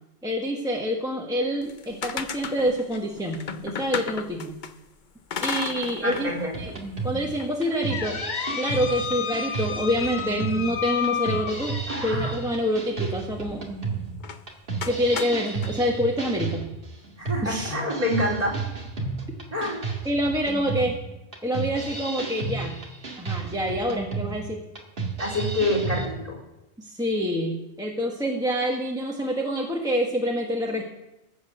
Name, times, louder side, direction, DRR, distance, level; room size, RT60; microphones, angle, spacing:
voice 1, 0.2-4.6 5.4-6.7 7.0-8.2 8.5-11.8 12.0-13.6 14.9-16.6 17.4-17.7 20.0-21.0 21.4-22.8 23.2-24.6 26.8-30.8, equal, 5° right, -1 dB, 1.3 m, -27 dB
sound 1, 1.6-4.7 5.3-6.3 6.7-6.8 7.4-12.1 14.2-14.4 14.8-15.7, left 7 dB, 50° left, 0.8 m, -32 dB
voice 2, 6.0-6.5 11.9-12.3 17.2-18.6 19.5-19.8 25.2-26.4, left 1 dB, 35° right, -3 dB, 3.8 m, -27 dB
sound 2, 6.5-26.1, right 4 dB, 50° right, 2.1 m, -32 dB
14.5 x 8.1 x 6.7 m, 0.95 s
omnidirectional pair, 1.2 m